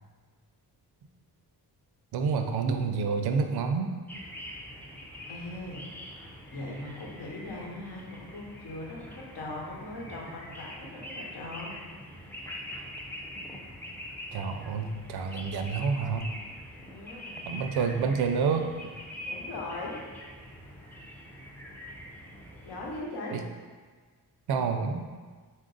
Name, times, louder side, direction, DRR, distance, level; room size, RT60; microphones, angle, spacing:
voice 1, 2.1-3.9 14.3-16.3 17.5-18.7 23.3-23.4 24.5-25.1, right 5 dB, 70° right, 6 dB, 0.5 m, -28 dB
sound 1, 4.1-23.0, left 1 dB, 5° left, 0.4 m, -44 dB
voice 2, 5.3-5.8 6.5-11.8 16.9-17.5 19.2-20.0 22.6-23.3, left 2 dB, 80° left, -3 dB, 1.0 m, -40 dB
4.0 x 2.5 x 3.8 m, 1.5 s
wide cardioid pair, 130°, 39 cm